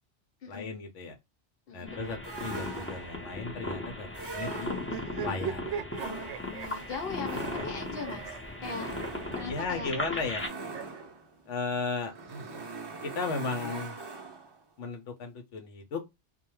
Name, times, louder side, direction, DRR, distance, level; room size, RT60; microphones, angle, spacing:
voice 1, 0.5-1.2 1.7-4.7 5.2-5.8 9.4-10.4 11.5-12.1 13.0-14.0 14.8-16.0, left 4 dB, 80° left, 0.9 m, -35 dB
voice 2, 1.7-2.1 6.4-8.9 9.3-10.2, left 5 dB, 55° left, 1.0 m, -40 dB
sound 1, 1.9-10.5, left 2 dB, 15° left, 0.6 m, -38 dB
sound 2, 2.2-3.3 4.1-5.2 5.9-14.6, right 3 dB, 35° right, 0.4 m, -42 dB
sound 3, 4.8-11.0 12.0-13.1, right 8 dB, 80° right, 0.9 m, -41 dB
2.3 x 2.2 x 2.9 m
omnidirectional pair, 1.2 m